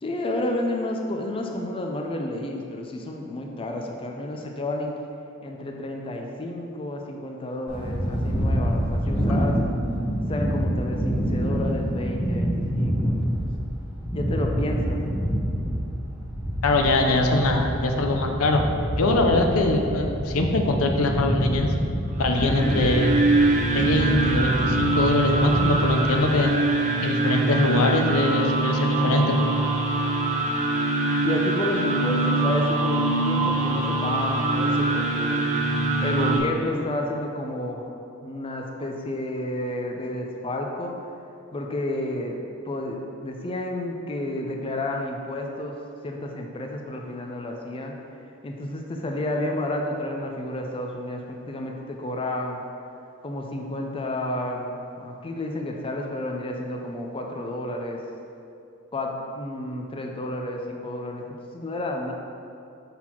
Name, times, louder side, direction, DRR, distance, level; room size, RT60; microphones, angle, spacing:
voice 1, 0.0-4.9 5.4-9.6 10.3-13.5 14.1-15.0 31.2-35.4 36.0-37.9 38.2-41.0 41.5-42.4 42.7-45.8 46.0-47.9 48.4-52.6 53.2-58.0 58.9-61.2 61.5-62.1, left 1 dB, 25° left, 1 dB, 0.4 m, -31 dB
sound 1, 7.7-26.4, equal, 5° right, 1.4 m, -27 dB
voice 2, 16.6-18.6 18.9-21.7 22.2-23.2 23.7-26.5 27.0-29.5, left 2 dB, 85° left, 3 dB, 0.6 m, -23 dB
sound 2, 22.1-36.4, right 2 dB, 35° right, 0.7 m, -23 dB
5.8 x 4.0 x 4.4 m, 2.7 s
head